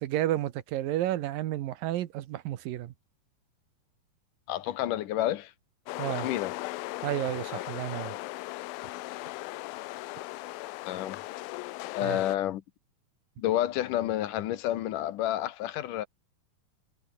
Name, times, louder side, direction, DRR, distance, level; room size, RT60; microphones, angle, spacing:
voice 1, 0.0-2.9 6.0-6.3 7.0-8.2 12.0-12.2, right 13 dB, 80° right, 2.9 m, -31 dB
voice 2, 4.5-5.5 6.1-6.5 7.5-7.6 10.9-11.2 11.9-12.6 13.4-16.1, left 13 dB, 70° left, 2.5 m, -30 dB
sound 1, 5.9-12.4, left 20 dB, 90° left, 2.5 m, -38 dB
omnidirectional pair, 4.0 m